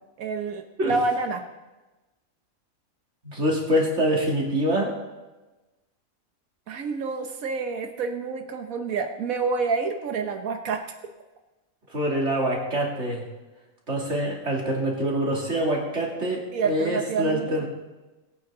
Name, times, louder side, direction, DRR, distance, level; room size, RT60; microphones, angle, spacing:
voice 1, 0.2-1.4 6.7-10.8 16.5-17.7, right 4 dB, 85° right, 5 dB, 1.4 m, -28 dB
voice 2, 3.2-4.9 11.9-13.2 13.9-17.7, right 1 dB, 55° right, -2 dB, 3.2 m, -25 dB
21.5 x 8.9 x 3.9 m, 1.1 s
omnidirectional pair, 1.4 m